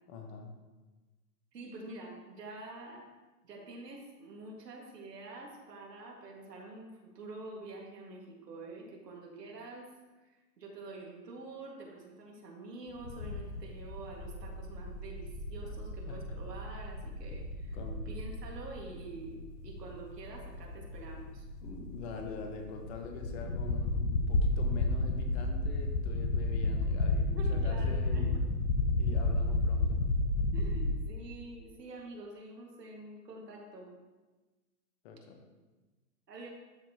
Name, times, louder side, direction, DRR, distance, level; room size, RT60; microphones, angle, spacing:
voice 1, 0.1-0.5 15.6-15.7 16.1-16.4 17.7-18.1 21.6-28.4 29.0-30.0 35.0-35.4, left 4 dB, 40° left, 4 dB, 1.3 m, -44 dB
voice 2, 1.5-3.0 3.4-9.9 10.2-17.8 18.1-21.5 27.3-28.3 30.5-33.9 36.3-36.5, right 2 dB, 80° right, -1 dB, 2.1 m, -47 dB
sound 1, 13.0-30.9, left 2 dB, 75° left, 1.0 m, -32 dB
12.0 x 4.5 x 2.9 m, 1.2 s
hypercardioid pair, 125°, 48 cm